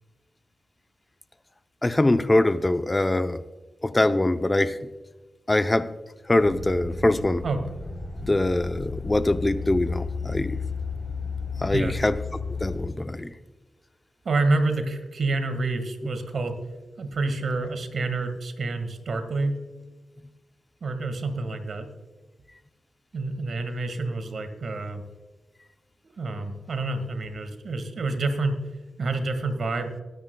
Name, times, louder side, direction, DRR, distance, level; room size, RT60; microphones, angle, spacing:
voice 1, 1.8-3.4 3.8-4.8 5.5-5.9 6.3-7.4 8.2-10.6 11.6-12.2 12.6-13.3, left 2 dB, 25° left, 11 dB, 0.7 m, -23 dB
sound 1, 6.4-12.9, left 4 dB, 40° left, 3.4 m, -33 dB
voice 2, 14.2-16.6 17.0-19.6 20.8-21.9 23.1-25.0 26.0-28.6 29.0-29.9, right 3 dB, 65° right, 7 dB, 1.8 m, -28 dB
21.5 x 9.8 x 2.3 m, 1.2 s
cardioid pair, 50°, 0 cm